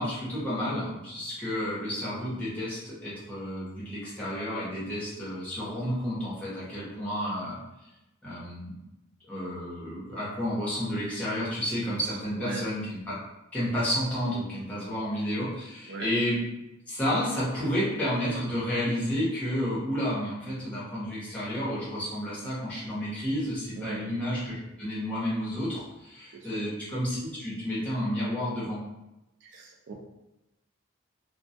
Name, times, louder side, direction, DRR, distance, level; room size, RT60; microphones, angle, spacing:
voice 1, 0.0-7.6 8.2-8.8 9.3-13.2 13.5-16.4 16.9-28.8, equal, 5° left, -9 dB, 0.8 m, -31 dB
voice 2, 26.3-26.6 29.4-29.9, right 4 dB, 55° right, 1 dB, 0.3 m, -39 dB
2.2 x 2.1 x 2.6 m, 0.96 s
head